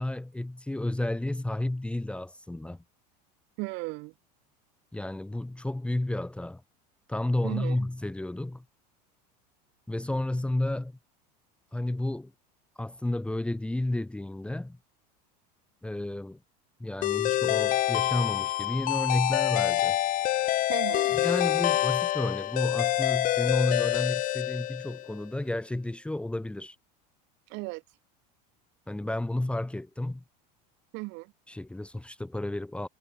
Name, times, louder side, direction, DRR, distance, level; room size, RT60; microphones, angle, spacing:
voice 1, 0.0-2.8 4.9-6.6 7.1-8.6 9.9-11.0 11.7-12.3 12.8-14.8 15.8-16.4 16.8-20.0 21.1-26.7 28.9-30.2 31.5-32.9, left 1 dB, 5° left, 1.5 m, -31 dB
voice 2, 3.6-4.1 7.4-7.8 20.7-21.2 27.5-27.8 30.9-31.3, right 26 dB, 60° right, 3.5 m, -35 dB
sound 1, 17.0-25.1, left 14 dB, 40° left, 0.9 m, -26 dB
supercardioid pair, 120°, 21 cm